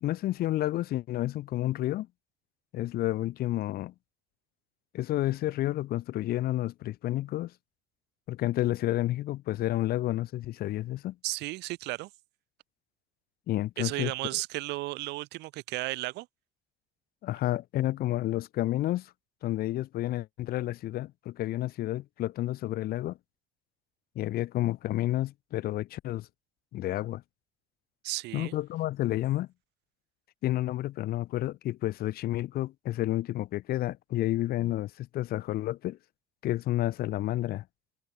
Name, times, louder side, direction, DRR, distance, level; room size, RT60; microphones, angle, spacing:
voice 1, 0.0-2.1 2.7-3.9 4.9-7.5 8.3-11.2 13.5-14.1 17.2-19.1 19.4-23.2 24.2-26.3 26.7-27.2 28.3-29.5 30.4-36.0 36.4-37.6, left 15 dB, 65° left, 0.6 m, -30 dB
voice 2, 11.2-12.1 13.8-16.3 28.0-28.5, right 20 dB, 90° right, 2.2 m, -34 dB
cardioid pair, 110°, 17 cm